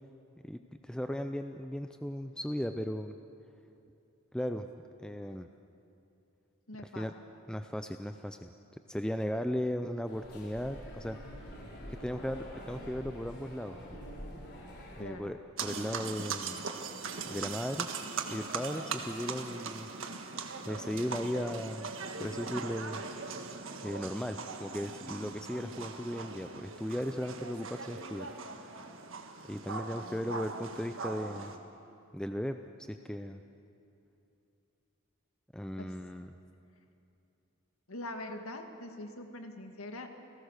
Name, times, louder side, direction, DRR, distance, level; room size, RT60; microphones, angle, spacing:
voice 1, 0.4-3.2 4.3-4.7 5.0-5.5 6.8-7.1 7.5-8.5 8.9-11.2 11.9-14.0 15.0-16.6 17.3-17.9 18.3-19.9 20.7-21.9 22.2-23.0 23.8-28.3 29.5-31.5 32.1-33.4 35.5-36.3, equal, 5° left, 7 dB, 0.5 m, -36 dB
voice 2, 6.7-7.1 15.0-15.4 29.9-30.2 35.8-35.9 37.9-40.1, left 1 dB, 85° left, 5 dB, 2.0 m, -43 dB
sound 1, 10.1-15.0, equal, 50° left, 4.7 m, -46 dB
sound 2, 15.6-31.6, right 4 dB, 65° right, 1.6 m, -40 dB
29.5 x 18.0 x 6.6 m, 2.8 s
head